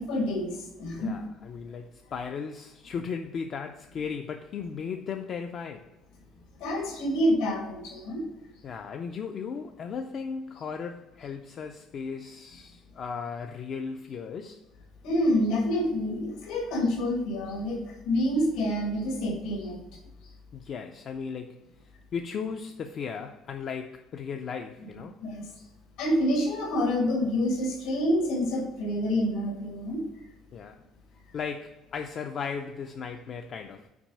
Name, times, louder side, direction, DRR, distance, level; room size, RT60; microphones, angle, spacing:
voice 1, 0.0-1.2 6.6-8.2 15.0-19.8 25.2-25.5 26.0-30.0, equal, 80° left, 2.1 m, -27 dB
voice 2, 1.0-5.9 8.6-14.6 20.5-21.6 22.1-25.2 30.5-30.8 31.3-33.9, left 6 dB, 35° left, 0.4 m, -36 dB
6.0 x 4.6 x 5.4 m
cardioid pair, 175°, 0 cm